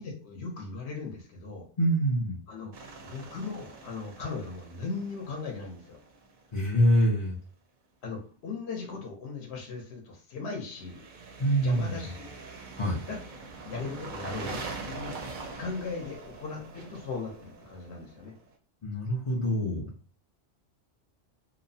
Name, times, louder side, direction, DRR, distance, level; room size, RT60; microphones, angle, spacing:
voice 1, 0.0-1.7 2.5-2.7 3.0-6.0 8.0-11.0 11.6-12.3 13.0-13.2 13.6-15.2 15.6-18.3, left 4 dB, 70° left, 0 dB, 0.9 m, -38 dB
voice 2, 1.8-2.4 6.5-7.3 11.4-12.0 12.8-13.0 18.8-19.9, equal, 40° left, -4 dB, 0.4 m, -25 dB
sound 1, 2.7-6.6 10.7-18.4, right 3 dB, 60° right, 0.5 m, -43 dB
2.8 x 2.0 x 2.6 m, 0.40 s
omnidirectional pair, 1.2 m